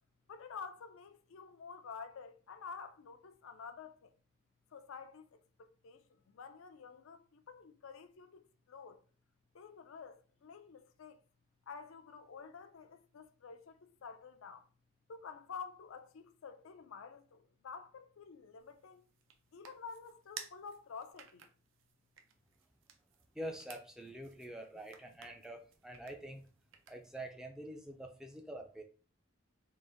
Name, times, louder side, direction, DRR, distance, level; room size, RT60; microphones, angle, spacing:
voice 1, 0.3-4.1 4.7-9.0 9.5-11.2 11.7-14.7 15.1-19.0 19.5-21.5, left 5 dB, 80° left, 0.4 m, -50 dB
sound 1, 18.6-27.3, right 7 dB, 70° right, 0.5 m, -56 dB
voice 2, 23.3-26.4 26.9-28.8, right 1 dB, 5° right, 0.4 m, -46 dB
3.8 x 2.5 x 3.8 m
head